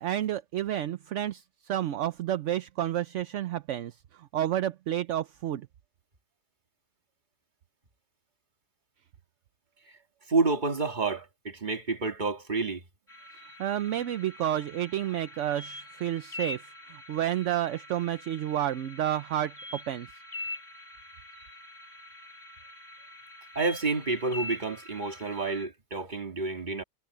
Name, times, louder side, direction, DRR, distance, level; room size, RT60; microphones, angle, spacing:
voice 1, 0.0-5.7 13.6-16.6 16.9-20.1, right 11 dB, 65° right, 0.9 m, -30 dB
voice 2, 10.3-12.8 23.6-26.8, right 3 dB, 30° right, 2.0 m, -29 dB
sound 1, 13.1-25.7, left 2 dB, 30° left, 2.9 m, -44 dB
omnidirectional pair, 1.6 m